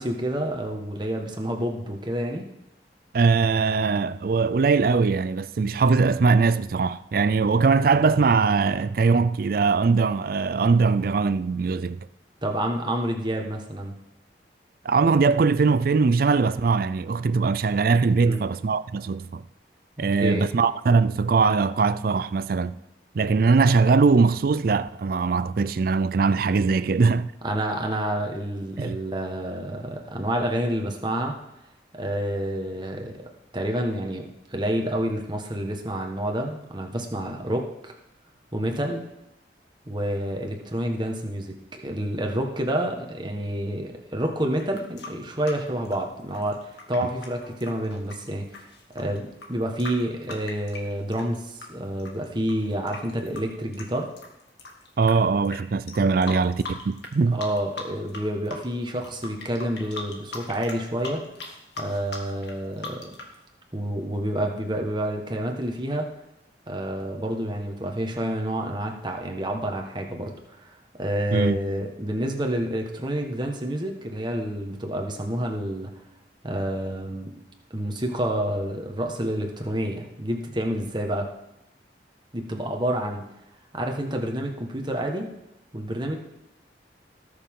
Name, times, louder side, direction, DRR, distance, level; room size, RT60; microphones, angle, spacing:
voice 1, 0.0-2.4 12.4-13.9 18.2-18.4 20.0-20.4 27.4-31.4 31.9-33.2 33.5-37.9 38.5-39.0 39.9-48.5 48.9-54.1 56.2-56.3 57.3-61.2 61.8-63.2 63.7-66.1 66.7-75.9 76.4-77.3 77.7-81.3 82.3-83.2 83.7-85.3 85.7-86.2, right 1 dB, 25° right, 1.5 m, -28 dB
voice 2, 3.1-12.1 14.8-19.5 20.0-22.8 23.1-27.3 28.8-29.0 55.0-57.4 71.3-71.6, right 4 dB, 55° right, 0.4 m, -21 dB
sound 1, 44.5-51.7 52.0-55.1 55.4-55.6 55.9-57.1 57.4-58.2 58.5-63.3, left 3 dB, 70° left, 2.0 m, -39 dB
18.5 x 6.8 x 3.8 m
head